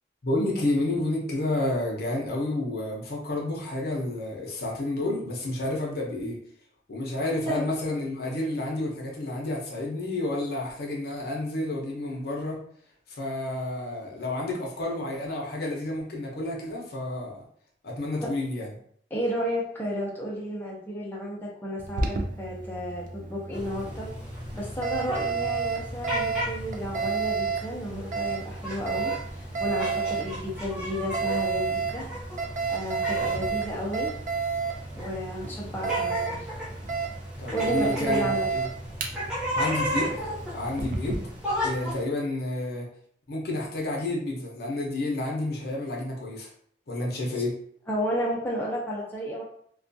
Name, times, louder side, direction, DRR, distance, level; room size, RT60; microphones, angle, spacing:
voice 1, 0.2-6.4 6.9-12.6 13.1-17.4 17.8-18.7 33.5-33.8 37.4-38.7 39.5-40.1 40.5-41.3 41.6-42.9 43.3-46.5 46.9-47.6, left 2 dB, 60° left, -2 dB, 0.6 m, -30 dB
voice 2, 19.1-24.1 24.5-29.2 29.6-32.0 32.7-34.1 34.9-36.5 37.5-38.5 47.9-49.4, equal, 10° left, -4 dB, 0.5 m, -32 dB
Alarm, 21.8-41.2, right 5 dB, 45° right, 0.4 m, -32 dB
sound 1, 23.5-42.0, equal, 5° right, 0.9 m, -35 dB
2.3 x 2.2 x 2.6 m, 0.63 s
head